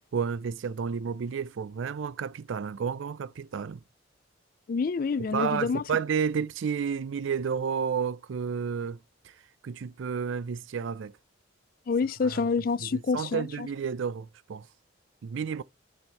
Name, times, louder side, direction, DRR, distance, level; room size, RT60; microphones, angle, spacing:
voice 1, 0.0-3.8 5.3-9.0 9.2-9.3 9.6-11.1 12.2-12.4 12.8-14.7 15.2-15.6, right 6 dB, 70° right, 0.4 m, -31 dB
voice 2, 4.7-5.8 11.9-13.7, left 4 dB, 45° left, 0.3 m, -27 dB
8.0 x 4.4 x 4.0 m
head